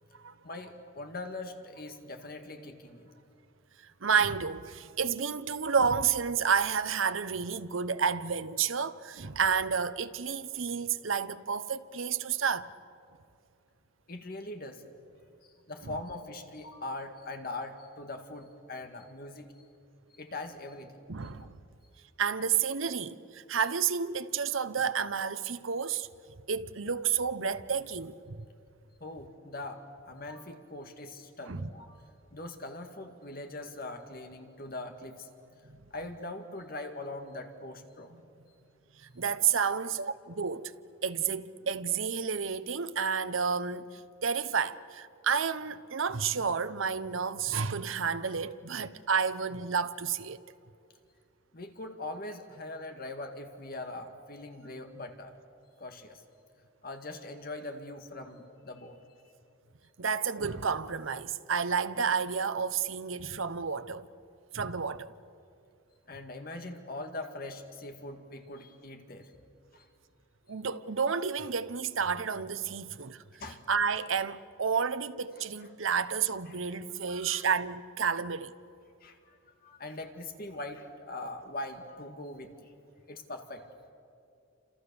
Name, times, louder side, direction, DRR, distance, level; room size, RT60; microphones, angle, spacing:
voice 1, 0.4-3.1 14.1-14.8 15.4-19.5 20.1-21.0 21.4-21.5 29.0-32.0 32.3-35.3 35.9-38.1 51.5-55.3 55.8-56.2 56.8-59.0 66.1-69.3 69.7-69.9 70.7-70.8 73.4-73.6 76.5-77.5 79.0-82.7 83.1-83.7, left 2 dB, 45° left, 2.0 m, -42 dB
voice 2, 4.0-12.7 15.8-15.9 21.1-21.5 22.2-26.1 26.5-28.5 31.5-31.7 35.7-35.8 39.1-40.7 41.0-50.4 60.0-64.1 64.5-65.1 70.5-73.2 73.7-78.5, right 6 dB, 70° right, 0.9 m, -30 dB
28.5 x 27.5 x 7.0 m
head